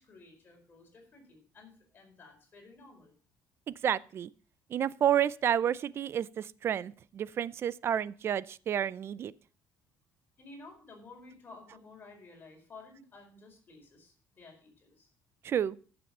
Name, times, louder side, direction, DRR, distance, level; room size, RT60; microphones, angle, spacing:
voice 1, 0.0-3.1 10.4-15.1, left 3 dB, 30° left, 4.8 m, -53 dB
voice 2, 3.7-4.3 4.7-9.3 15.4-15.8, right 9 dB, 40° right, 0.5 m, -30 dB
14.0 x 7.0 x 5.4 m
cardioid pair, 135°, 6 cm